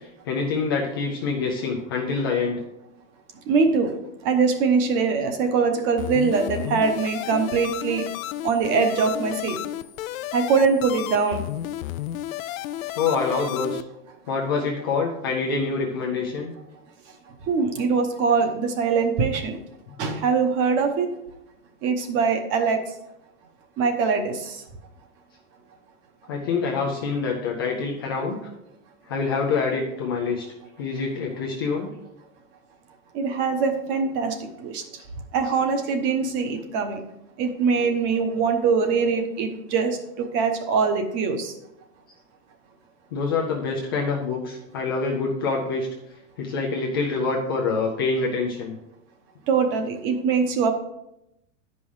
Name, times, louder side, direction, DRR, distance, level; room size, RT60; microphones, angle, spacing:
voice 1, 0.3-2.6 13.0-13.8 14.3-16.5 26.3-28.4 29.1-30.4 30.8-31.9 43.1-45.9 46.4-48.8, left 4 dB, 20° left, -1 dB, 0.3 m, -26 dB
voice 2, 3.5-3.9 4.2-8.0 8.4-9.6 10.3-11.4 17.5-19.6 20.0-21.1 21.8-22.8 23.8-24.6 33.1-34.8 35.3-37.0 37.4-41.5 49.5-50.7, right 5 dB, 30° right, 6 dB, 1.0 m, -23 dB
sound 1, 6.0-13.8, left 13 dB, 80° left, 0.6 m, -32 dB
9.9 x 5.5 x 4.7 m, 0.83 s
supercardioid pair, 170°, 41 cm